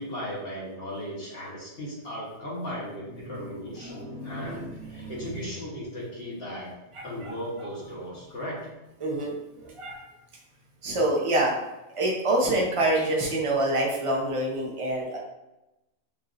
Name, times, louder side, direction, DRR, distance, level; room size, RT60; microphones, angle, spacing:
voice 1, 0.0-6.7 7.0-8.6 10.9-11.0, equal, 50° left, -5 dB, 1.5 m, -36 dB
voice 2, 3.8-5.3 6.9-7.7 9.0-10.0 10.8-11.5 11.9-15.2, right 1 dB, 30° right, -2 dB, 0.9 m, -27 dB
7.1 x 2.7 x 2.6 m, 0.94 s
omnidirectional pair, 1.3 m